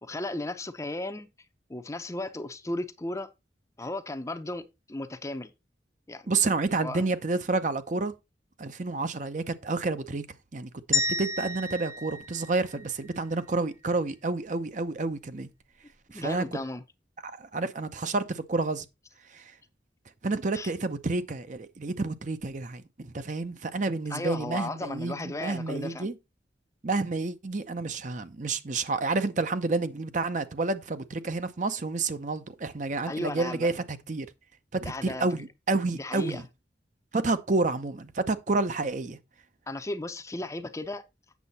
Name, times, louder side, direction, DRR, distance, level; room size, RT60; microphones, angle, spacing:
voice 1, 0.0-1.3 1.7-3.3 3.8-4.6 4.9-5.5 6.1-6.3 6.8-7.0 16.1-16.8 20.5-20.7 24.1-26.1 33.1-33.7 34.8-35.4 35.9-36.4 39.7-41.0, left 2 dB, 15° left, 0.6 m, -35 dB
voice 2, 6.3-8.1 8.6-10.3 10.5-15.5 16.1-16.4 17.2-18.8 19.3-19.5 20.2-26.2 26.8-34.3 34.7-36.4 37.1-39.2, right 3 dB, 45° right, 0.7 m, -29 dB
sound 1, 10.9-13.2, left 2 dB, 15° right, 1.0 m, -31 dB
8.3 x 6.7 x 4.1 m
head